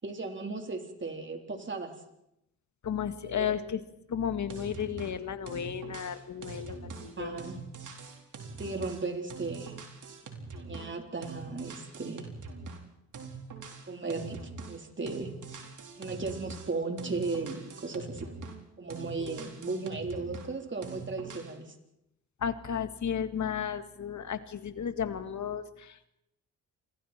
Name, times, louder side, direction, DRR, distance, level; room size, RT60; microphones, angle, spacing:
voice 1, 0.0-2.0 3.2-3.5 7.2-7.6 8.6-9.8 10.5-12.3 13.9-14.4 14.7-15.4 16.0-18.3 18.8-21.8, right 3 dB, 30° right, 3 dB, 4.1 m, -36 dB
voice 2, 2.8-3.8 4.1-7.4 19.2-19.4 22.4-26.1, left 8 dB, 50° left, 10 dB, 1.9 m, -34 dB
sound 1, 4.5-5.2 5.5-11.0 11.2-12.9 13.1-14.8 15.1-18.7 18.9-20.5 20.8-21.6, right 4 dB, 55° right, 4.3 m, -44 dB
28.0 x 23.0 x 4.5 m, 0.83 s
supercardioid pair, 60°, 36 cm